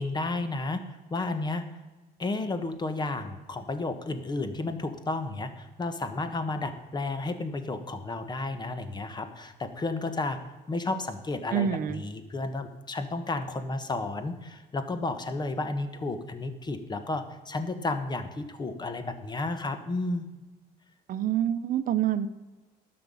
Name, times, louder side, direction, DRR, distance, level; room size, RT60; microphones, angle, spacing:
voice 1, 0.0-1.6 2.2-10.4 10.7-20.3, left 2 dB, 25° left, 10 dB, 1.3 m, -32 dB
voice 2, 11.5-12.0 21.1-22.3, right 10 dB, 55° right, 13 dB, 0.8 m, -27 dB
12.0 x 5.9 x 8.4 m, 1.2 s
cardioid pair, 110°, 17 cm